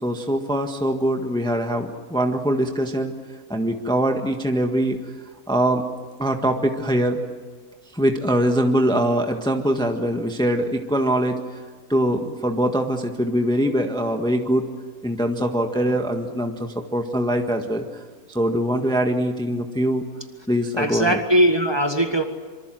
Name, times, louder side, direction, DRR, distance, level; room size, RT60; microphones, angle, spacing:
voice 1, 0.0-3.1 3.5-5.0 5.5-5.8 6.2-7.2 7.9-11.4 11.9-14.7 15.0-17.8 18.3-20.0 20.5-21.2, equal, 5° left, 4 dB, 1.5 m, -22 dB
voice 2, 20.8-22.2, right 1 dB, 15° right, 5 dB, 1.7 m, -20 dB
26.0 x 24.5 x 7.7 m, 1.5 s
omnidirectional pair, 1.6 m